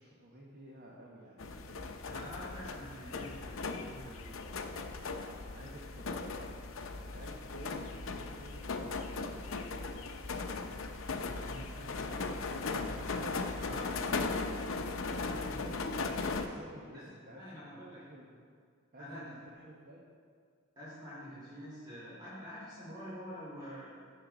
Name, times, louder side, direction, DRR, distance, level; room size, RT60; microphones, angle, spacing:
voice 1, 0.0-1.9 5.4-6.6 6.9-9.3 15.4-18.3 18.9-20.0, right 1 dB, 45° right, -3 dB, 1.2 m, -52 dB
sound 1, 1.4-16.5, left 3 dB, 70° left, 0.7 m, -38 dB
voice 2, 2.0-4.3 11.4-14.4 15.0-15.8 16.9-17.1 17.3-18.0 19.0-19.3 20.8-23.9, equal, 20° right, -9 dB, 2.6 m, -47 dB
16.0 x 6.7 x 4.0 m, 2.1 s
head